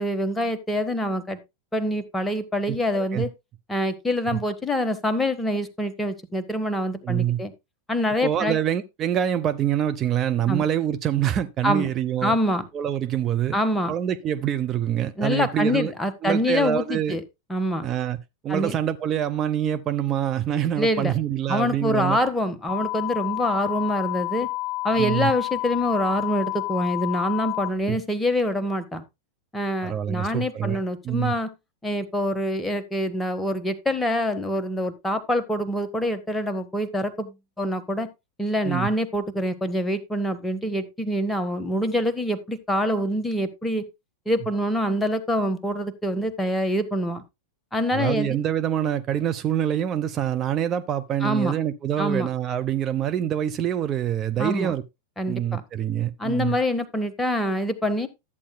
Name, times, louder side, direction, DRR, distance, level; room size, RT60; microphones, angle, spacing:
voice 1, 0.0-1.4 1.7-3.3 3.7-7.5 7.9-8.6 10.5-10.6 11.6-11.9 12.2-12.7 13.5-13.9 15.2-17.2 17.5-17.8 18.5-18.7 20.8-21.1 21.5-24.5 24.8-29.0 29.5-31.5 31.8-38.1 38.4-43.9 44.3-47.2 47.7-48.4 51.2-51.5 52.0-52.3 54.4-54.7 55.2-55.6 56.2-58.1, equal, 10° left, 1.1 m, -25 dB
voice 2, 2.7-3.2 7.0-7.4 8.2-12.4 12.7-13.6 13.9-15.9 16.2-17.2 17.8-18.2 18.4-22.2 25.0-25.3 27.9-28.0 29.8-31.3 38.6-38.9 47.9-54.8 55.3-56.6, right 10 dB, 30° right, 0.6 m, -25 dB
sound 1, 22.7-27.7, left 20 dB, 55° left, 0.6 m, -29 dB
13.0 x 8.6 x 2.2 m
figure-of-eight pair, 90°, 0 cm